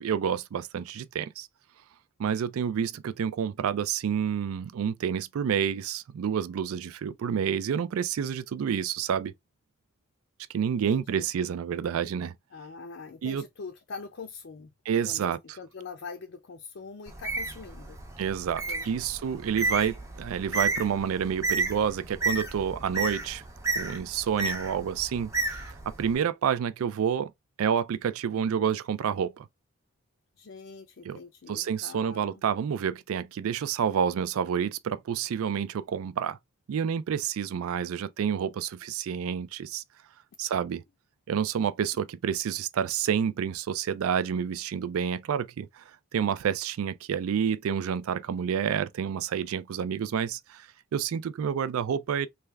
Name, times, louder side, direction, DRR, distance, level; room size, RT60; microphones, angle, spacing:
voice 1, 0.0-1.5 2.2-9.3 10.5-12.3 13.2-13.4 14.9-15.4 18.2-23.4 23.7-27.3 27.6-29.5 31.0-31.2 31.5-36.4 36.7-39.8 40.4-40.8 41.3-52.3, right 8 dB, 85° right, 0.3 m, -29 dB
voice 2, 10.7-11.3 12.5-18.0 18.7-19.0 30.4-32.4, left 4 dB, 60° left, 0.5 m, -43 dB
Bird, 17.1-26.1, right 3 dB, 15° right, 0.6 m, -32 dB
3.3 x 2.3 x 3.3 m
head